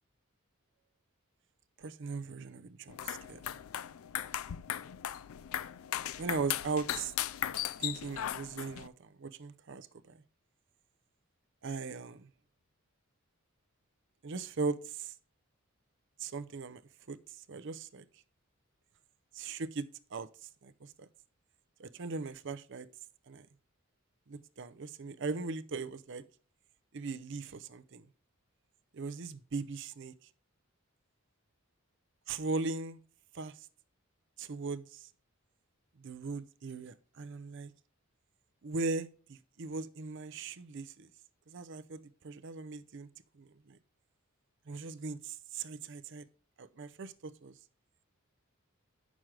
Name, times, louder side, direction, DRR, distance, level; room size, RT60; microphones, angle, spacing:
voice 1, 1.8-3.4 6.2-7.1 7.8-9.9 11.6-12.3 14.2-15.1 16.2-16.8 17.1-17.2 17.5-18.0 19.3-19.9 20.1-20.3 20.6-21.1 21.8-22.9 23.3-23.5 24.3-26.2 26.9-28.0 28.9-30.1 32.3-33.0 33.3-33.5 34.4-35.0 36.0-37.7 38.6-41.1 41.5-43.1 43.4-43.8 44.7-46.2 46.6-47.5, right 4 dB, 60° right, 0.6 m, -39 dB
sound 1, 2.9-8.9, left 11 dB, 80° left, 0.4 m, -37 dB
9.0 x 6.2 x 4.7 m
head